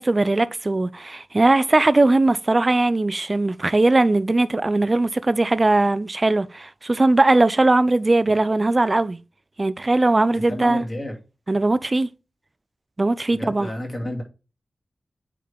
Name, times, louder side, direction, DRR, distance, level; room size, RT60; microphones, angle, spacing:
voice 1, 0.0-9.2 9.6-10.8 11.5-12.1 13.0-13.7, right 2 dB, 30° right, 0.4 m, -19 dB
voice 2, 10.4-11.1 13.3-14.2, left 1 dB, 30° left, 2.4 m, -30 dB
8.5 x 3.7 x 3.5 m
wide cardioid pair, 115°, 0 cm